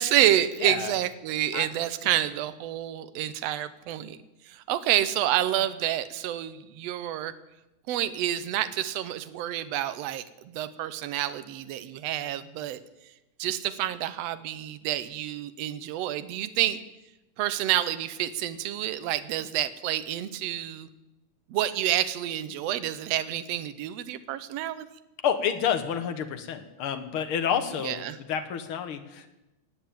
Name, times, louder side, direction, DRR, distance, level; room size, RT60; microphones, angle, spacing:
voice 1, 0.0-4.2 4.4-7.3 7.9-12.8 13.4-16.8 17.4-20.9 21.5-24.9 27.8-28.2, right 12 dB, 70° right, 12 dB, 1.6 m, -28 dB
voice 2, 0.6-0.9 1.5-1.7 25.2-29.3, left 8 dB, 60° left, 9 dB, 1.5 m, -29 dB
18.0 x 7.9 x 8.8 m, 0.98 s
omnidirectional pair, 3.7 m